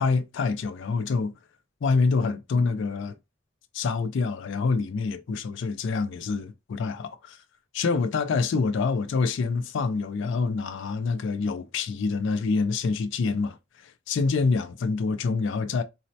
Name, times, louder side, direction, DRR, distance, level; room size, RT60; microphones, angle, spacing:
voice 1, 0.0-1.3 1.8-3.2 3.7-7.4 7.7-13.6 13.8-15.8, left 4 dB, 65° left, 0.4 m, -26 dB
4.1 x 2.1 x 2.7 m
head